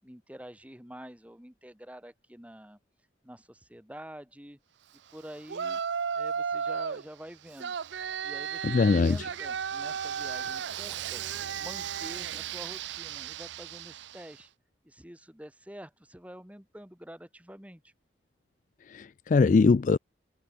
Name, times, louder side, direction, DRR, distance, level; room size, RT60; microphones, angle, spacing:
voice 1, 0.0-2.8 3.2-4.6 5.1-5.8 6.1-7.7 8.2-11.2 11.6-14.5 14.8-17.9, equal, 10° right, 2.3 m, -47 dB
Yell, 5.5-7.0 7.6-14.3, right 7 dB, 80° right, 0.6 m, -34 dB
voice 2, 8.6-9.2 18.9-20.0, left 4 dB, 45° left, 0.3 m, -22 dB
head